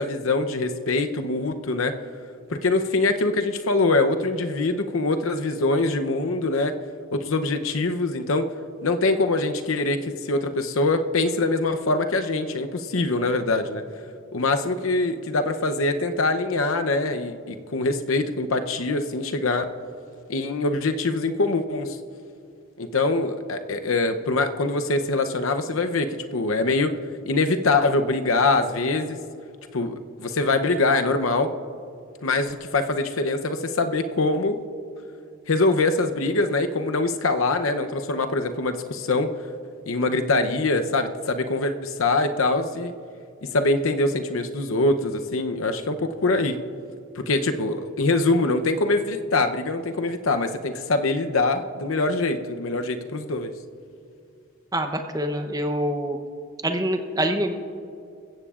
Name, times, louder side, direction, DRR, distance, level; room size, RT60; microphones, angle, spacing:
voice 1, 0.0-1.9 2.5-6.7 7.1-8.5 8.8-13.8 14.3-19.7 20.3-22.0 22.8-26.9 27.3-29.2 29.7-31.5 32.2-34.6 35.5-39.3 39.9-42.9 43.5-46.6 47.2-53.5, left 2 dB, 75° left, 8 dB, 0.7 m, -23 dB
voice 2, 54.7-56.2 56.6-57.5, right 1 dB, 15° right, 6 dB, 0.8 m, -25 dB
21.5 x 15.5 x 2.5 m, 2.5 s
head